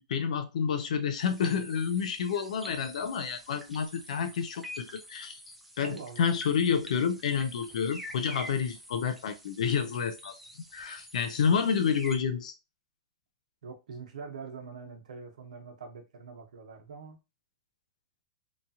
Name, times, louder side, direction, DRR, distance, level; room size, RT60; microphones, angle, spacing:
voice 1, 0.1-5.4 5.8-10.3 10.7-12.5, left 6 dB, 75° left, 0.6 m, -29 dB
sound 1, 1.2-12.2, equal, ahead, 0.5 m, -47 dB
voice 2, 5.8-6.3 13.6-17.2, right 5 dB, 85° right, 0.9 m, -44 dB
3.0 x 2.3 x 2.7 m
hypercardioid pair, 155°, 4 cm